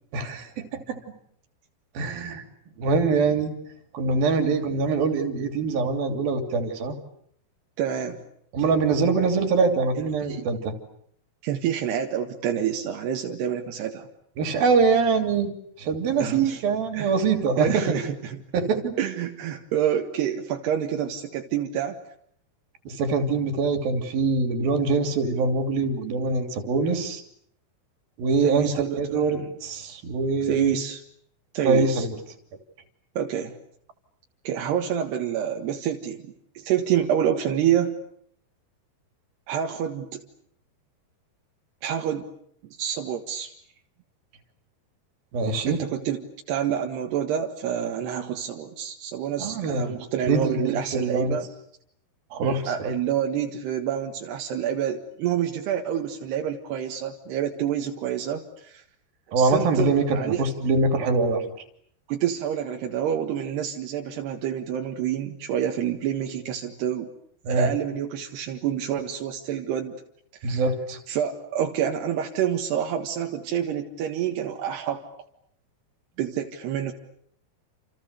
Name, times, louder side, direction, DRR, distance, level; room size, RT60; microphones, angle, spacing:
voice 1, 0.1-1.0 1.9-2.4 2.8-3.5 3.9-6.9 8.5-10.7 14.4-15.5 15.8-17.9 18.5-18.9 22.9-27.2 28.2-28.7 29.0-30.8 31.6-32.2 45.3-45.8 49.4-50.0 50.3-51.4 52.3-52.9 59.3-61.4 67.4-67.7 70.4-71.0, right 4 dB, 65° right, 6 dB, 4.7 m, -24 dB
voice 2, 7.8-8.2 9.2-9.3 10.0-10.5 11.4-14.1 16.2-16.6 16.9-17.1 17.6-18.4 19.0-22.0 28.4-29.5 30.4-31.0 31.6-32.1 33.2-33.6 34.5-38.0 39.5-40.2 41.8-42.2 42.8-43.5 45.7-46.2 46.5-51.5 52.4-58.8 59.4-60.4 62.1-67.1 67.5-69.9 70.4-70.6 71.1-75.0 76.2-76.9, right 9 dB, 85° right, 2 dB, 3.8 m, -28 dB
29.5 x 28.5 x 6.9 m, 0.68 s
omnidirectional pair, 4.6 m